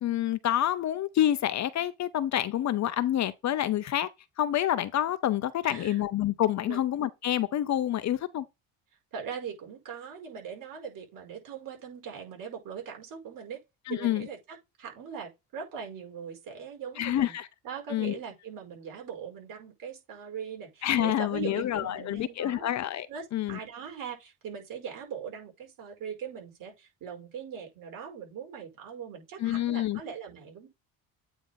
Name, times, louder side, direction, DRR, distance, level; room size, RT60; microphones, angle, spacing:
voice 1, 0.0-4.1 4.4-8.4 13.9-14.2 17.0-17.5 17.9-18.2 20.8-23.1 23.3-23.6 29.4-30.0, left 12 dB, 45° left, 0.8 m, -28 dB
voice 2, 5.6-6.0 6.6-6.8 9.1-13.6 13.9-17.4 17.6-22.7 23.1-30.7, right 7 dB, 60° right, 5.2 m, -41 dB
8.8 x 3.5 x 4.1 m
cardioid pair, 110°, 38 cm